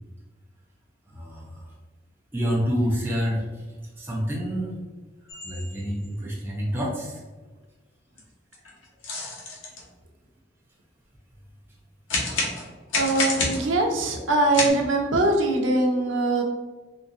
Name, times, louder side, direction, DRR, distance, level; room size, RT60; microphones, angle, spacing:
voice 1, 1.1-1.7 2.3-3.6 4.0-4.8 5.4-7.2, equal, 10° right, -5 dB, 0.6 m, -28 dB
sound 1, 5.3-6.1 7.4-7.5 8.2-8.3 8.5-9.8 12.1-13.8 14.5-14.7, left 3 dB, 90° left, 0.9 m, -28 dB
voice 2, 13.0-16.4, right 2 dB, 85° right, 1 dB, 0.7 m, -22 dB
3.9 x 2.6 x 2.6 m, 1.3 s
head